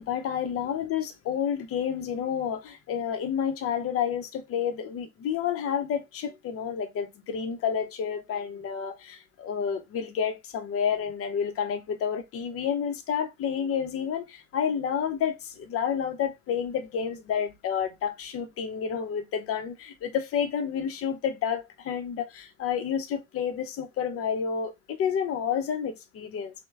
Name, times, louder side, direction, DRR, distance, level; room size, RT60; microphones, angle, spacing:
voice 1, 0.0-26.5, left 7 dB, 30° left, 0.7 m, -30 dB
3.2 x 2.2 x 3.1 m
figure-of-eight pair, 60°, 43 cm